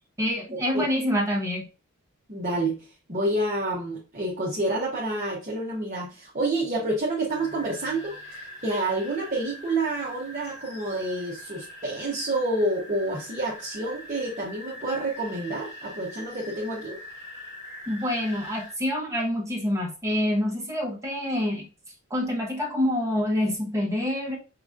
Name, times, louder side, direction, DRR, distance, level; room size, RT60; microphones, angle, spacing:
voice 1, 0.2-1.6 17.9-21.7 22.1-24.4, left 1 dB, 15° right, -3 dB, 1.1 m, -26 dB
voice 2, 2.3-8.2 8.6-17.0, right 2 dB, 35° right, -3 dB, 0.9 m, -28 dB
sound 1, 7.3-18.7, left 1 dB, 50° left, 1.1 m, -43 dB
5.9 x 2.9 x 2.5 m, 0.33 s
head